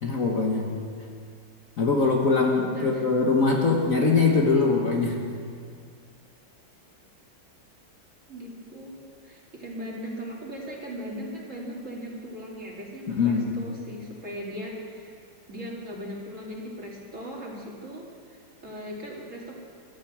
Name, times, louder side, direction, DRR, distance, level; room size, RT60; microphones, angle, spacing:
voice 1, 0.0-0.8 1.8-5.2 13.1-13.5, left 4 dB, 45° left, 0 dB, 1.5 m, -22 dB
voice 2, 2.7-3.0 8.3-15.2 15.5-19.5, equal, 40° right, -3 dB, 2.8 m, -38 dB
13.5 x 12.5 x 7.4 m, 2.2 s
omnidirectional pair, 2.2 m